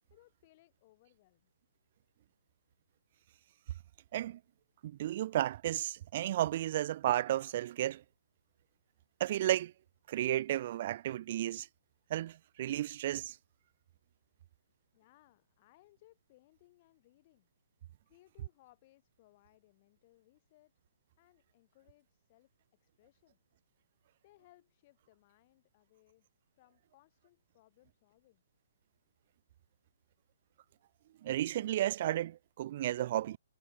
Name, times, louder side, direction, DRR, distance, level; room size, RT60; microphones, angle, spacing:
voice 1, 0.1-1.5 14.9-17.5 18.1-20.7 21.2-22.5 22.8-23.4 24.2-26.3 26.5-28.4, left 18 dB, 35° left, 7.8 m, -66 dB
voice 2, 4.8-8.0 9.2-9.7 10.1-11.7 12.1-13.4 31.2-33.4, right 13 dB, 40° right, 0.4 m, -33 dB
figure-of-eight pair, 125°, 0 cm